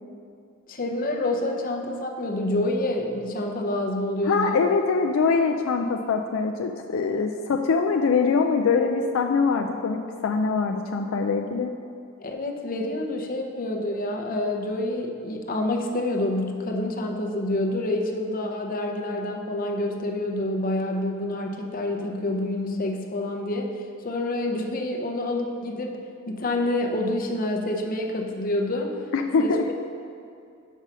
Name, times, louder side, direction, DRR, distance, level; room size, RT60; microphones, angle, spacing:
voice 1, 0.7-4.6 12.2-26.0 26.3-29.0 29.4-29.7, left 1 dB, 45° left, 2 dB, 0.7 m, -27 dB
voice 2, 4.3-11.7 29.1-29.7, left 4 dB, 75° left, 4 dB, 0.4 m, -23 dB
5.5 x 5.4 x 6.1 m, 2.5 s
head